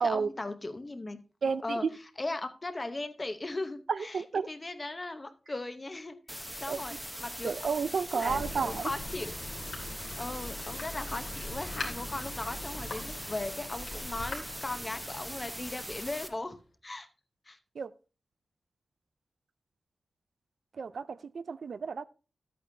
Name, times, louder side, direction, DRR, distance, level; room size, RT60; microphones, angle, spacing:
voice 1, 0.0-1.2 1.6-1.8 2.2-4.2 4.5-6.9 7.2-7.5 8.1-9.3 10.2-16.6 16.8-17.1 17.5-17.6, left 2 dB, 25° left, 0.8 m, -38 dB
voice 2, 1.4-1.9 3.9-4.5 6.7-6.8 7.4-8.9 17.8-17.9 20.8-22.1, right 5 dB, 70° right, 0.4 m, -31 dB
sound 1, 6.3-16.3, equal, 5° right, 0.8 m, -41 dB
Thunder, 8.3-16.6, left 2 dB, 80° left, 2.3 m, -43 dB
12.0 x 8.6 x 2.6 m
wide cardioid pair, 140°, 0 cm